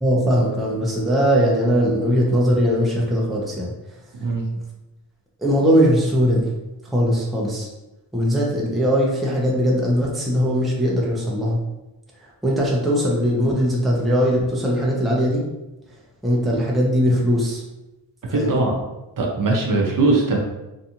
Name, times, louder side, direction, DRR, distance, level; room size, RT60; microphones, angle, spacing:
voice 1, 0.0-3.7 5.4-6.5 6.9-7.7 8.1-11.6 12.4-15.4 16.2-17.6 18.3-18.5, equal, ahead, -4 dB, 0.5 m, -20 dB
voice 2, 18.3-18.8 19.2-20.4, right 3 dB, 50° right, -1 dB, 0.6 m, -20 dB
2.6 x 2.3 x 2.8 m, 0.99 s
cardioid pair, 90°, 45 cm